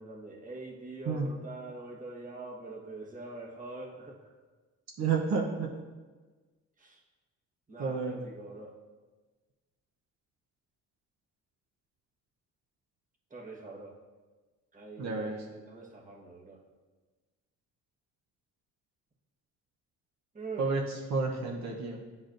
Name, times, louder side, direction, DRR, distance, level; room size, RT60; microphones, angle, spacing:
voice 1, 0.0-4.3 6.8-7.0 7.7-8.7 13.3-13.9 14.7-16.6 20.3-20.7, right 3 dB, 25° right, -2 dB, 1.2 m, -44 dB
voice 2, 5.0-5.7 7.8-8.2 15.0-15.5 20.6-22.0, right 4 dB, 65° right, 0 dB, 0.9 m, -31 dB
10.0 x 4.0 x 2.5 m, 1.3 s
cardioid pair, 90°, 30 cm